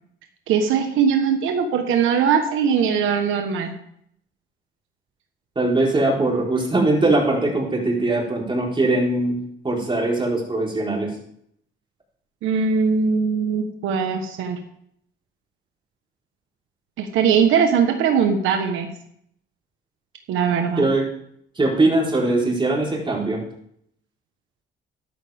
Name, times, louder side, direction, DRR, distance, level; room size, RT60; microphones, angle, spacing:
voice 1, 0.5-3.8 12.4-14.6 17.0-18.9 20.3-20.9, right 6 dB, 90° right, 5 dB, 1.3 m, -20 dB
voice 2, 5.6-9.4 9.6-11.1 20.8-21.0 21.6-23.4, right 2 dB, 25° right, -3 dB, 4.4 m, -21 dB
12.5 x 11.5 x 3.6 m, 0.69 s
cardioid pair, 90°, 20 cm